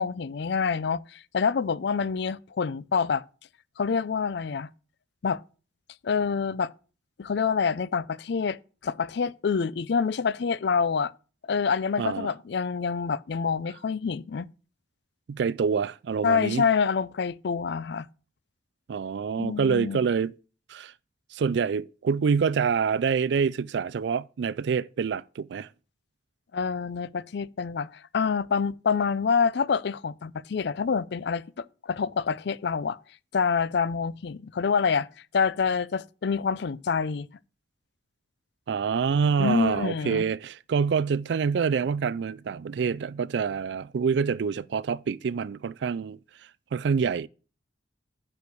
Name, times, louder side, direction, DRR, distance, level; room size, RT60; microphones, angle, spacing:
voice 1, 0.0-3.2 3.8-4.7 5.2-5.4 6.0-6.7 7.2-11.1 11.5-14.5 16.2-18.1 19.4-20.0 26.5-33.0 33.3-35.1 35.3-37.3 39.4-40.2, left 5 dB, 60° left, 0.4 m, -27 dB
voice 2, 12.0-12.3 15.3-16.7 18.9-20.3 20.7-20.9 21.3-25.7 38.7-46.2 46.7-47.3, right 6 dB, 65° right, 0.3 m, -26 dB
9.7 x 4.7 x 6.9 m
head